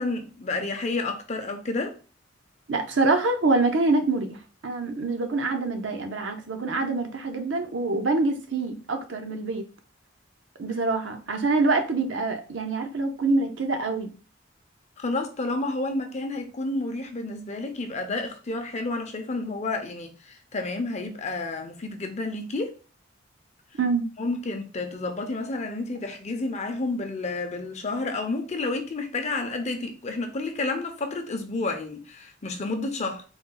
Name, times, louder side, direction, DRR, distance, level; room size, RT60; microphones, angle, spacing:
voice 1, 0.0-1.9 15.0-22.7 24.2-33.2, left 2 dB, 35° left, 0.6 m, -30 dB
voice 2, 2.7-4.4 4.6-9.6 10.6-14.1 23.8-24.0, right 3 dB, 70° right, 0.7 m, -25 dB
3.9 x 2.2 x 3.8 m
head